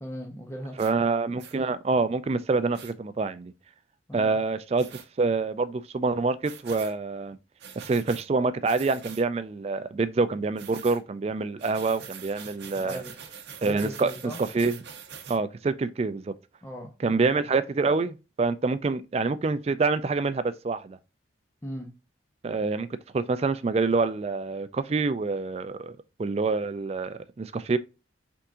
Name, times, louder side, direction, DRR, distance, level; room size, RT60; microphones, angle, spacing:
voice 1, 0.0-0.8 4.1-4.4 12.8-13.2 13.7-14.4 16.6-17.3 21.6-21.9, equal, 15° left, 0.7 m, -38 dB
voice 2, 0.8-3.5 4.1-7.4 7.8-13.0 13.6-14.1 14.5-14.7 15.3-16.2 17.0-21.0 22.4-22.9 23.1-27.8, right 4 dB, 35° right, 0.3 m, -26 dB
sound 1, 0.8-0.9 1.4-1.6 2.7-2.9 4.8-5.1 6.4-6.9 7.6-8.3 8.7-9.3 10.6-11.0 11.6-15.4, right 7 dB, 60° right, 0.7 m, -44 dB
5.5 x 3.6 x 2.6 m
head